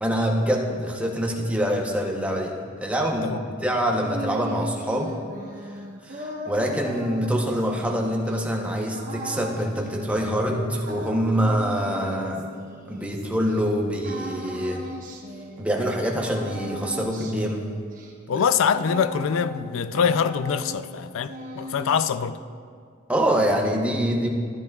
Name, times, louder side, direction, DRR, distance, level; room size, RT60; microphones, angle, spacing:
voice 1, 0.0-5.1 6.0-12.5 12.9-14.8 15.6-17.7 23.1-24.3, equal, 5° right, 1 dB, 0.8 m, -25 dB
sound 1, 3.7-13.6 14.0-15.9 16.2-19.7 19.9-20.9 21.2-22.2, right 1 dB, 40° right, 1.1 m, -38 dB
voice 2, 18.3-22.4, left 7 dB, 80° left, 13 dB, 0.4 m, -24 dB
13.0 x 10.5 x 2.3 m, 2.1 s
head